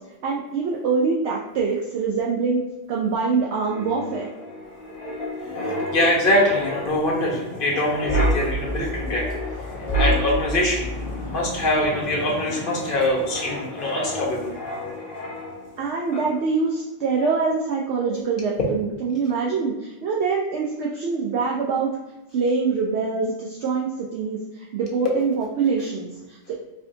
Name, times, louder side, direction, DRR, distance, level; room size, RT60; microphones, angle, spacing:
voice 1, 0.2-2.6 2.9-4.3 15.8-21.9 22.3-26.5, right 4 dB, 70° right, -3 dB, 0.8 m, -24 dB
Wind, 3.4-15.8 16.1-16.4, equal, 25° left, 1.2 m, -29 dB
voice 2, 5.5-9.2 10.0-10.8 11.3-14.5, left 1 dB, 50° left, -2 dB, 1.0 m, -23 dB
4.2 x 2.7 x 2.6 m, 1.0 s
omnidirectional pair, 1.2 m